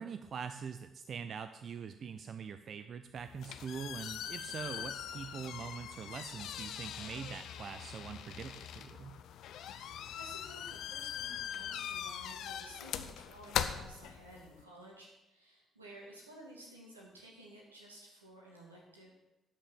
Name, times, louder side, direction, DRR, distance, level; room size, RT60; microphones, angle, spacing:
voice 1, 0.0-9.2, right 6 dB, 50° right, 10 dB, 0.6 m, -43 dB
sound 1, 3.2-14.6, left 9 dB, 60° left, 0.7 m, -41 dB
voice 2, 9.6-19.1, right 1 dB, 90° right, -2 dB, 2.4 m, -54 dB
12.5 x 6.1 x 7.6 m, 0.94 s
figure-of-eight pair, 45°, 0 cm